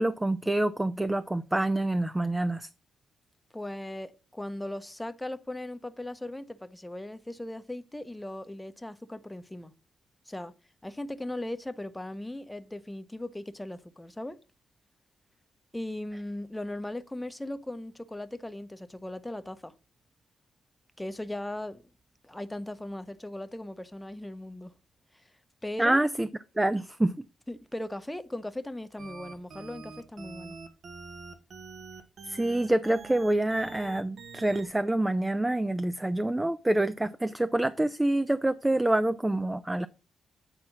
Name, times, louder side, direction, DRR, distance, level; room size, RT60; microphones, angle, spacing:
voice 1, 0.0-2.7 25.8-26.3 26.6-27.2 32.3-39.9, right 1 dB, 10° right, 0.5 m, -26 dB
voice 2, 3.5-9.7 10.3-10.5 10.8-14.4 15.7-19.7 21.0-21.8 22.2-24.7 25.1-25.2 25.6-26.0 27.5-30.5, left 1 dB, 10° left, 0.8 m, -38 dB
sound 1, 29.0-34.7, right 4 dB, 65° right, 1.4 m, -45 dB
8.9 x 4.2 x 6.0 m
cardioid pair, 90°, 0 cm